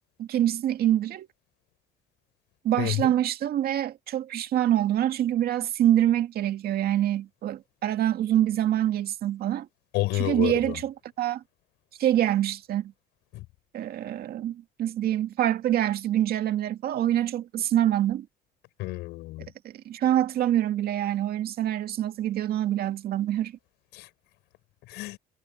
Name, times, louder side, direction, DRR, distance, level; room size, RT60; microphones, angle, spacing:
voice 1, 0.2-1.3 2.6-9.7 10.1-11.4 12.0-12.9 13.7-18.3 19.6-23.5, right 12 dB, 65° right, 2.1 m, -25 dB
voice 2, 2.8-3.1 9.9-10.8 13.3-13.4 18.8-19.5 23.9-24.1 24.9-25.2, left 19 dB, 90° left, 7.4 m, -29 dB
cardioid pair, 110°, 17 cm